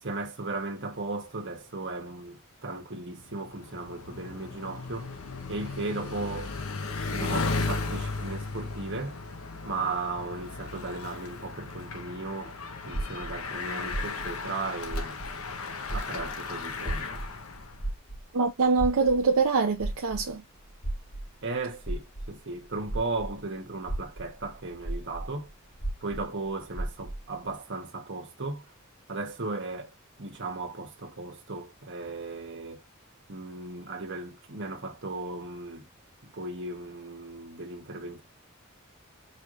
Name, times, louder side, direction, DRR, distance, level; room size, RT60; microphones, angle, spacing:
voice 1, 0.0-5.2 5.5-6.5 7.1-9.2 9.6-12.6 12.8-15.2 15.9-17.2 21.4-25.5 26.0-28.6 29.1-29.9 30.2-32.8 33.3-35.9 36.3-38.2, right 3 dB, 60° right, 1.3 m, -36 dB
Bicycle, 3.2-17.8, left 3 dB, 90° left, 0.9 m, -36 dB
sound 1, 12.9-15.6 15.8-23.4 23.8-27.3, right 1 dB, 30° left, 1.2 m, -35 dB
voice 2, 18.3-20.4, right 4 dB, 75° right, 0.6 m, -24 dB
5.0 x 3.2 x 2.5 m
head